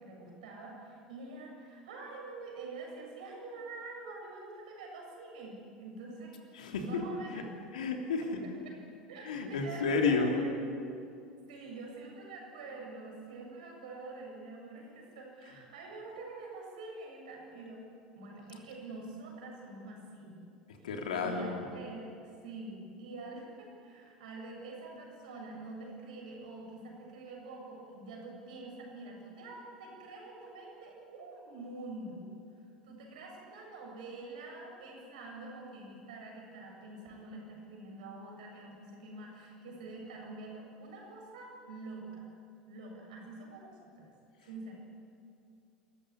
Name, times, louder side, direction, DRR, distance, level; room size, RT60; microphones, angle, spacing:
voice 1, 0.0-6.4 6.8-7.4 8.4-8.8 9.1-10.5 11.5-17.9 18.1-20.4 20.8-20.9 21.2-22.1 22.4-42.3 42.7-44.1 44.4-44.7, right 3 dB, 70° right, 0 dB, 7.5 m, -46 dB
voice 2, 6.5-7.1 7.3-7.4 7.7-8.4 9.2-10.4 20.8-21.6, left 4 dB, 75° left, 2 dB, 3.3 m, -31 dB
27.0 x 15.0 x 9.9 m, 2.5 s
figure-of-eight pair, 75°, 4 cm